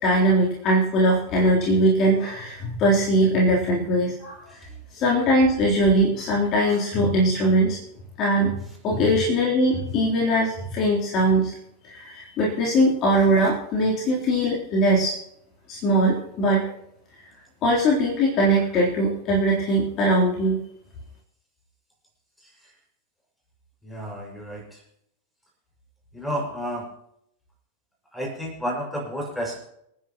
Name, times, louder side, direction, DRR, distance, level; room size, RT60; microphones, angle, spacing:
voice 1, 0.0-4.4 4.9-7.8 8.2-8.6 8.8-11.5 11.8-15.1 15.7-16.6 17.6-20.6, right 1 dB, 35° left, -4 dB, 3.7 m, -21 dB
voice 2, 23.8-24.6 26.1-26.9 28.1-29.6, equal, 5° left, 0 dB, 6.3 m, -31 dB
27.5 x 10.0 x 3.1 m, 0.76 s
figure-of-eight pair, 90°, 0 cm